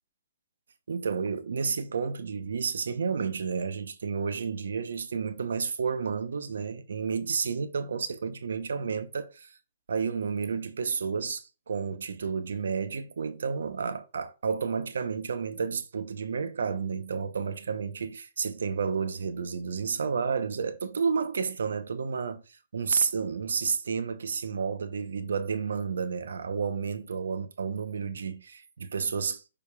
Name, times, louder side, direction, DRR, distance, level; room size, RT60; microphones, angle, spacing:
voice 1, 0.9-9.6 9.9-29.4, right 5 dB, 80° right, 0.8 m, -31 dB
8.7 x 5.0 x 2.3 m
hypercardioid pair, 145°, 0 cm